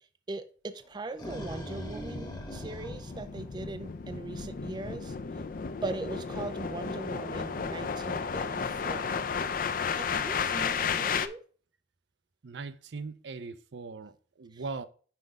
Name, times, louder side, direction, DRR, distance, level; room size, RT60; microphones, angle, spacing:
voice 1, 0.3-5.2 5.8-9.3 9.8-11.4 14.5-14.6, right 3 dB, 25° right, 0.4 m, -40 dB
sound 1, 0.9-4.1, equal, 20° left, 1.1 m, -42 dB
sound 2, 1.8-11.3, left 6 dB, 50° left, 0.4 m, -33 dB
voice 2, 12.4-14.8, right 4 dB, 75° right, 0.6 m, -40 dB
5.8 x 5.1 x 3.6 m
head